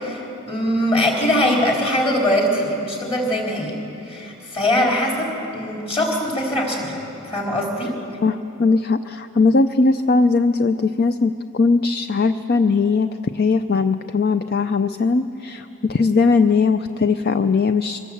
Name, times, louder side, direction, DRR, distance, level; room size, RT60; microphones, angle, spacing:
voice 1, 0.0-3.8 4.1-7.0 7.3-8.0, left 1 dB, 30° left, -1 dB, 4.1 m, -22 dB
voice 2, 8.2-13.1 13.3-18.0, left 4 dB, 50° left, 10 dB, 0.5 m, -19 dB
24.0 x 19.0 x 7.9 m, 2.9 s
head